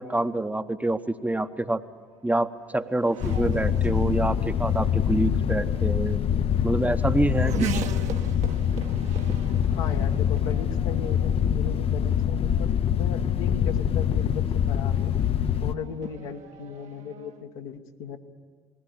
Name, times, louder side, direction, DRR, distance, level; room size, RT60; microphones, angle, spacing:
voice 1, 0.0-1.8 2.2-6.2 6.6-7.8, right 2 dB, 10° right, 9 dB, 0.9 m, -26 dB
Race car auto racing / Accelerating revving vroom, 1.2-17.4, right 7 dB, 55° right, 1.2 m, -41 dB
sound 1, 3.2-15.7, left 9 dB, 45° left, 0.7 m, -25 dB
voice 2, 9.7-15.1 15.6-18.2, left 7 dB, 70° left, 4 dB, 1.3 m, -37 dB
20.0 x 16.5 x 9.3 m, 1.5 s
figure-of-eight pair, 50°, 14 cm